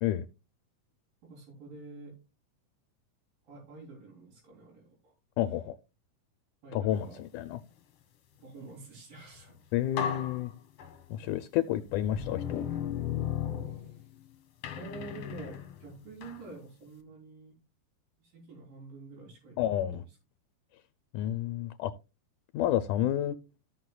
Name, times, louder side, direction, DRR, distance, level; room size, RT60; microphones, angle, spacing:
voice 1, 1.2-2.2 3.4-5.1 6.6-7.2 8.4-9.5 13.6-14.1 14.7-17.6 18.2-19.7 20.0-20.1, right 3 dB, 75° right, -5 dB, 5.3 m, -48 dB
voice 2, 5.4-5.8 6.7-7.6 9.7-10.5 11.1-12.6 19.6-20.0 21.1-21.9 22.5-23.4, left 12 dB, 80° left, 11 dB, 2.0 m, -30 dB
sound 1, 9.4-9.5 10.0-11.3 11.9-14.2 14.6-16.5, left 9 dB, 60° left, 1.8 m, -36 dB
15.5 x 6.3 x 2.3 m, 0.29 s
omnidirectional pair, 3.9 m